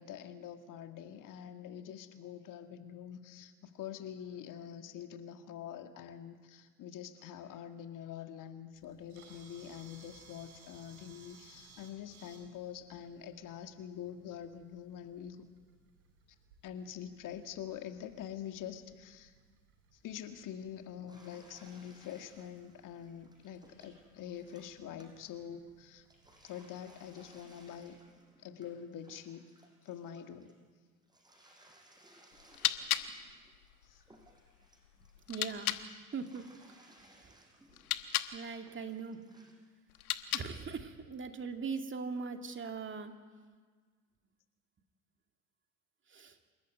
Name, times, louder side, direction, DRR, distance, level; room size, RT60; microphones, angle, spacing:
voice 1, 0.0-15.5 16.6-19.3 19.9-26.1 26.4-28.0 28.4-29.5 29.8-30.5 33.8-34.0, left 9 dB, 45° left, 7 dB, 1.9 m, -45 dB
Camera, 8.7-28.1, right 4 dB, 70° right, 6.5 m, -63 dB
sound 1, 21.1-25.7 26.0-30.6 31.0-35.8 36.1-39.7 39.9-40.0, right 1 dB, 10° right, 6.4 m, -63 dB
sound 2, 32.3-35.9 37.7-38.4 39.9-40.7, left 12 dB, 75° left, 1.2 m, -37 dB
voice 2, 35.3-35.8 36.1-36.8 37.2-37.4 38.3-39.2 40.3-43.1 46.1-46.4, right 5 dB, 25° right, 5 dB, 2.3 m, -40 dB
27.5 x 14.5 x 9.5 m, 1.5 s
figure-of-eight pair, 70°, 44 cm